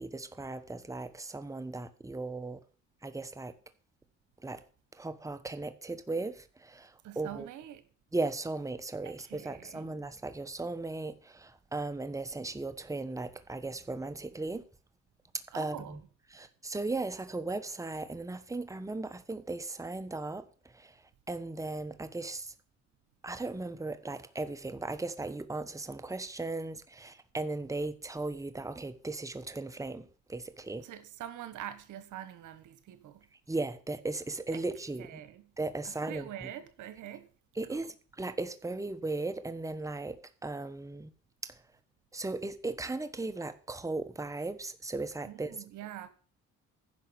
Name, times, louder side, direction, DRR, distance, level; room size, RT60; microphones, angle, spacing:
voice 1, 0.0-2.6 3.0-3.5 4.4-4.6 4.9-7.5 8.1-14.6 15.3-16.0 16.3-22.5 23.2-30.9 33.5-35.2 35.6-36.5 37.5-41.1 41.4-41.6 42.1-45.6, right 2 dB, 10° right, 1.1 m, -37 dB
voice 2, 7.0-7.8 9.0-9.9 15.5-16.0 30.8-33.3 34.5-34.6 35.0-35.5 35.8-37.3 37.7-37.8 45.2-46.1, right 11 dB, 85° right, 1.5 m, -44 dB
10.5 x 5.8 x 8.8 m
cardioid pair, 90°, 30 cm